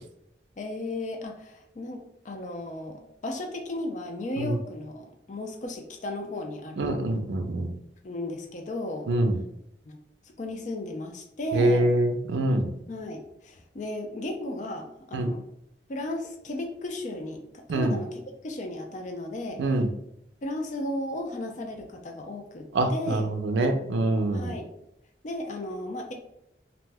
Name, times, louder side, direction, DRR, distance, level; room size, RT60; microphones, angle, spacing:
voice 1, 0.6-6.9 8.0-9.1 9.9-10.0 10.4-11.9 12.9-15.4 15.9-19.6 20.4-23.2 24.3-24.7 25.2-26.1, left 1 dB, 45° left, 3 dB, 0.4 m, -35 dB
voice 2, 6.8-7.7 9.1-9.4 11.5-12.7 15.1-15.3 17.7-18.0 19.6-19.9 22.7-24.5, right 1 dB, 90° right, 5 dB, 0.4 m, -25 dB
2.5 x 2.1 x 3.3 m, 0.80 s
head